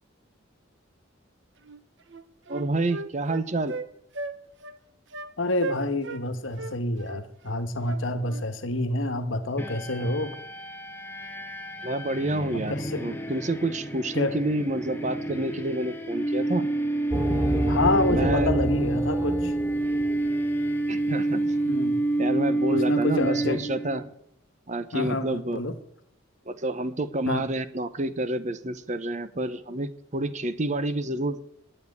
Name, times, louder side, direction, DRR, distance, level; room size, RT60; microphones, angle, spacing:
Wind instrument woodwind instrument, 1.6-1.8 2.1-3.9 4.1-4.4 4.6-4.8 5.1-5.3 5.6-6.2 6.6-8.4, right 3 dB, 60° right, 0.9 m, -36 dB
voice 1, 2.5-3.7 11.8-16.7 18.1-18.5 20.9-21.5 22.2-24.0 24.7-25.6 26.5-31.4, right 1 dB, 35° right, 12 dB, 0.8 m, -29 dB
voice 2, 5.4-10.4 12.5-13.0 14.1-14.3 17.7-19.5 21.6-22.0 22.7-23.6 24.9-25.8 27.3-27.4, left 2 dB, 70° left, 9 dB, 1.3 m, -28 dB
sound 1, 9.6-24.1, right 2 dB, 10° left, 1.2 m, -28 dB
sound 2, 17.1-20.5, equal, 10° right, 1.0 m, -29 dB
9.4 x 8.9 x 9.7 m, 0.74 s
head